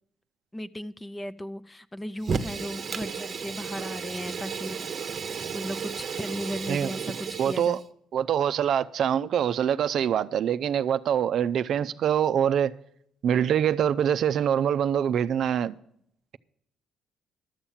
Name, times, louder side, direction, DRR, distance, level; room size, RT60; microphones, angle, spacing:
voice 1, 0.5-4.8 5.2-7.2 7.4-7.8, left 1 dB, 15° left, 0.6 m, -36 dB
Fire, 2.2-7.8, right 6 dB, 40° right, 0.9 m, -33 dB
voice 2, 7.4-7.8 8.1-12.7 13.2-15.7, right 9 dB, 65° right, 0.5 m, -24 dB
12.5 x 7.0 x 7.3 m
cardioid pair, 95°, 0 cm